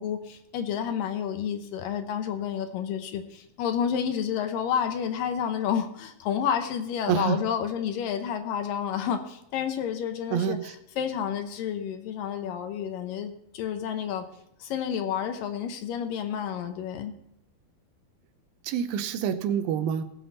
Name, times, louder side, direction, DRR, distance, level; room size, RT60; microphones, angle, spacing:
voice 1, 0.0-10.6 11.0-14.2 14.6-17.1, left 8 dB, 75° left, 7 dB, 2.5 m, -30 dB
voice 2, 7.1-7.4 10.3-10.7 18.6-20.0, right 8 dB, 85° right, 10 dB, 2.6 m, -27 dB
18.0 x 7.9 x 4.0 m, 0.78 s
omnidirectional pair, 4.2 m